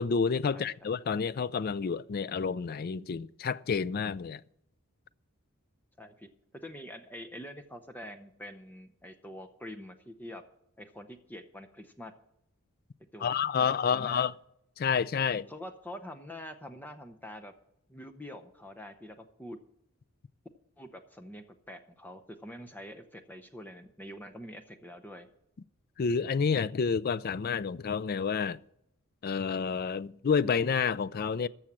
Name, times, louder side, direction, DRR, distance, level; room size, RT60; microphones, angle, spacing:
voice 1, 0.0-4.4 13.2-14.3 14.8-15.5 26.0-28.6 29.2-31.5, left 6 dB, 45° left, 0.3 m, -29 dB
voice 2, 6.0-6.3 6.6-10.4 10.8-12.1 13.1-14.3 15.5-17.5 17.9-19.6 20.8-25.3, left 1 dB, 10° left, 0.7 m, -45 dB
14.0 x 6.3 x 7.3 m
head